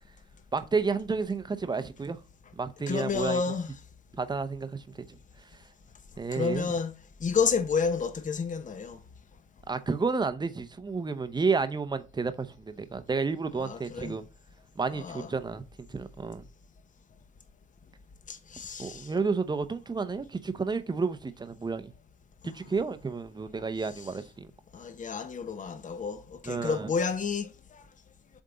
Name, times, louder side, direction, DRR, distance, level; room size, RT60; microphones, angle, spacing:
voice 1, 0.5-2.2 2.6-3.4 4.2-4.8 6.2-6.7 9.7-14.3 14.8-15.6 15.9-16.4 18.8-21.9 22.4-24.5 26.5-26.9, right 4 dB, 20° right, 0.7 m, -31 dB
voice 2, 2.9-3.7 6.3-6.9 7.2-9.0 13.6-14.2 14.9-15.3 18.3-19.1 22.4-22.5 24.7-27.5, left 5 dB, 40° left, 1.0 m, -30 dB
7.6 x 3.6 x 4.0 m
cardioid pair, 90°, 20 cm